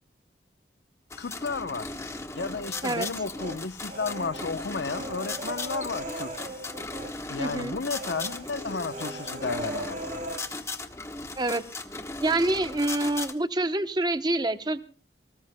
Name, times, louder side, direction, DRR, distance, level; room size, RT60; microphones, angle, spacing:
sound 1, 1.1-13.3, left 3 dB, 15° left, 1.1 m, -37 dB
voice 1, 1.2-1.9 2.4-6.3 7.3-10.0, left 4 dB, 70° left, 0.8 m, -33 dB
Human voice, 2.4-3.6 3.9-7.1 7.4-7.6 7.9-10.4, right 2 dB, 40° right, 2.8 m, -39 dB
voice 2, 7.4-7.8 11.4-11.6 12.2-14.8, right 2 dB, 20° right, 0.9 m, -26 dB
28.5 x 19.0 x 2.2 m
head